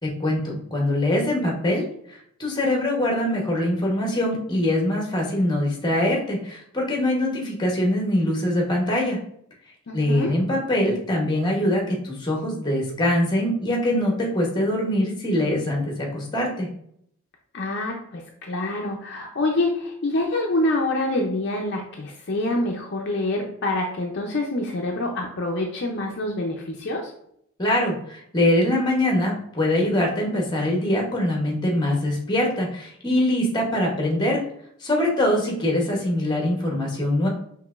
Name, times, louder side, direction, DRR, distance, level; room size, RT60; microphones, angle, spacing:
voice 1, 0.0-1.9 2.4-9.2 9.9-16.7 27.6-34.4 34.8-37.3, left 1 dB, 20° left, -1 dB, 0.9 m, -23 dB
voice 2, 9.9-10.3 17.5-27.1, left 2 dB, 50° left, 1 dB, 0.5 m, -26 dB
5.6 x 2.9 x 2.4 m, 0.68 s
head